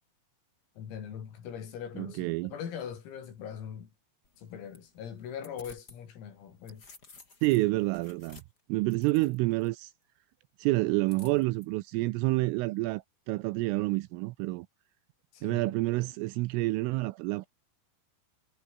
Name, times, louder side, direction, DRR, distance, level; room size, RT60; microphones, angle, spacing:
voice 1, 0.8-3.9 4.4-6.9 15.3-15.8, left 8 dB, 90° left, 6.9 m, -41 dB
voice 2, 2.0-2.5 7.4-8.4 8.7-9.9 10.6-14.7 15.4-17.5, right 21 dB, 80° right, 3.2 m, -28 dB
sound 1, 4.2-6.0 6.4-9.7 11.1-11.7, left 3 dB, 20° left, 3.9 m, -55 dB
omnidirectional pair, 5.9 m